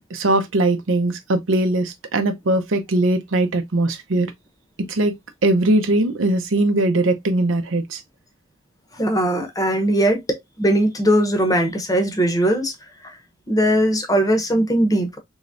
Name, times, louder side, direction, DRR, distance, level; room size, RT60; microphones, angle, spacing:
voice 1, 0.1-4.3 4.9-5.1 5.4-8.0, right 2 dB, 85° right, 0.7 m, -20 dB
voice 2, 8.9-12.7 13.0-13.2 13.5-15.2, right 1 dB, 20° left, 0.8 m, -19 dB
3.6 x 3.2 x 2.5 m
head